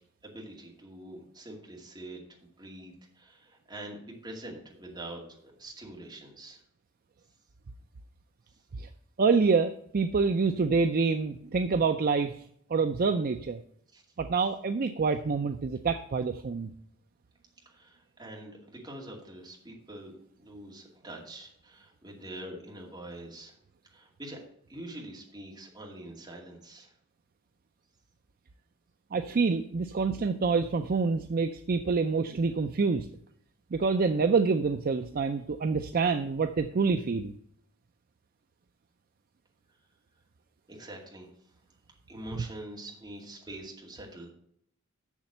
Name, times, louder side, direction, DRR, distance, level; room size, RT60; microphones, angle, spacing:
voice 1, 0.2-2.2 2.6-6.6 13.9-14.0 17.6-23.6 23.8-24.4 24.7-26.9 40.7-41.3 42.1-44.3, right 1 dB, 20° right, -1 dB, 2.3 m, -45 dB
voice 2, 9.2-12.4 12.7-13.6 14.2-16.7 29.1-33.1 33.7-37.3, right 4 dB, 40° right, 9 dB, 0.4 m, -27 dB
7.3 x 6.9 x 6.6 m, 0.68 s
head